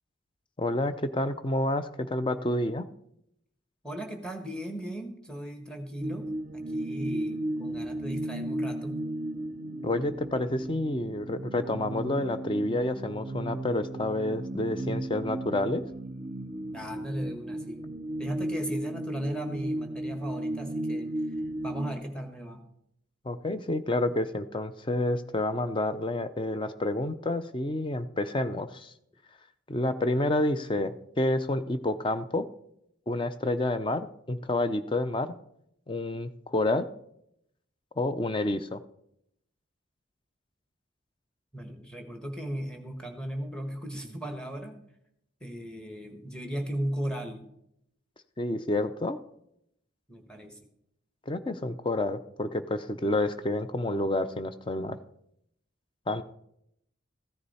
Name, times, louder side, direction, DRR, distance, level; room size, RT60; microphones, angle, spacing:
voice 1, 0.6-2.9 9.8-15.8 23.2-28.9 29.7-32.5 33.1-35.3 35.9-36.9 38.0-38.8 48.4-49.2 51.3-55.0 56.1-56.2, left 1 dB, 25° left, 11 dB, 0.5 m, -29 dB
voice 2, 3.8-9.0 16.7-17.9 18.2-22.6 41.5-44.8 45.4-47.4 50.1-50.6, equal, 5° left, 5 dB, 1.2 m, -37 dB
sound 1, 6.0-21.9, right 1 dB, 40° right, 0.5 m, -35 dB
14.5 x 9.9 x 4.2 m, 0.77 s
head